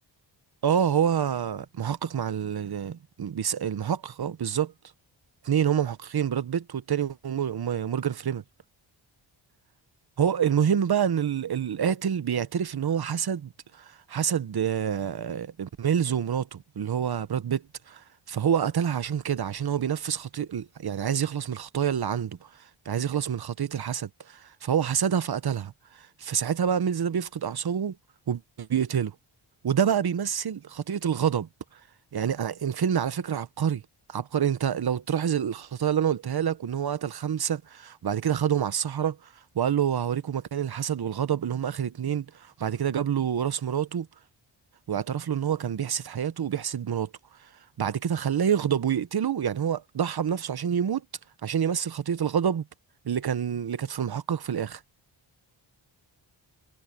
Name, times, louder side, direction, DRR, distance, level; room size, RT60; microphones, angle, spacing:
voice 1, 0.6-4.7 5.4-8.4 10.2-28.0 28.3-29.1 29.6-31.8 32.1-33.8 34.1-44.1 44.9-47.1 47.4-47.5 47.8-51.0 51.4-52.6 53.0-54.8, right 8 dB, 50° right, 1.0 m, -27 dB
wide cardioid pair, 105°, 48 cm